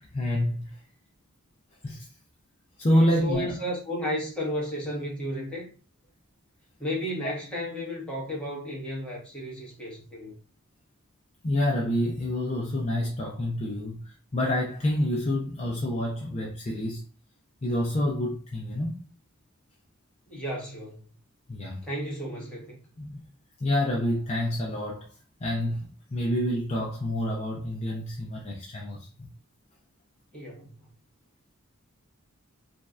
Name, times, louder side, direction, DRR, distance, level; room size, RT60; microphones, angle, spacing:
voice 1, 0.1-0.7 1.8-2.1 2.8-3.6 7.2-7.3 11.4-17.0 17.6-18.9 21.5-21.8 23.0-23.2 23.6-25.1 25.4-25.8 26.1-29.1, left 1 dB, 30° left, 0.5 m, -27 dB
voice 2, 2.9-5.7 6.8-10.3 20.3-21.0 21.8-22.8 30.3-30.7, equal, 5° left, 1.1 m, -33 dB
3.1 x 2.5 x 2.3 m
head